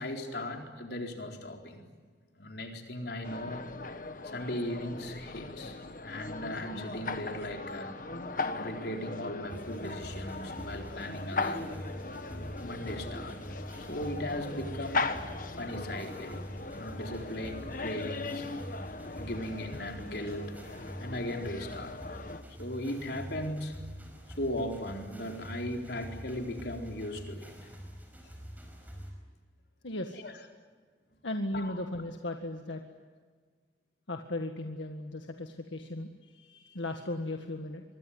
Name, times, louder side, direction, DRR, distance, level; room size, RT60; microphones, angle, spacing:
voice 1, 0.0-1.8 2.4-3.7 4.2-8.0 8.6-11.8 12.6-13.4 13.7-15.1 15.5-16.5 16.7-18.5 19.2-20.5 21.0-22.0 22.5-23.7 24.3-27.7 28.2-28.3 30.1-30.3 31.5-31.8, left 1 dB, 60° left, 3 dB, 4.2 m, -38 dB
sound 1, 3.2-22.4, left 3 dB, 45° left, 1.5 m, -39 dB
sound 2, 9.5-29.1, equal, 10° right, 5.2 m, -45 dB
voice 2, 29.8-30.2 31.2-32.8 34.1-37.8, left 1 dB, 85° left, 4 dB, 1.8 m, -36 dB
25.0 x 23.0 x 9.6 m, 1.5 s
head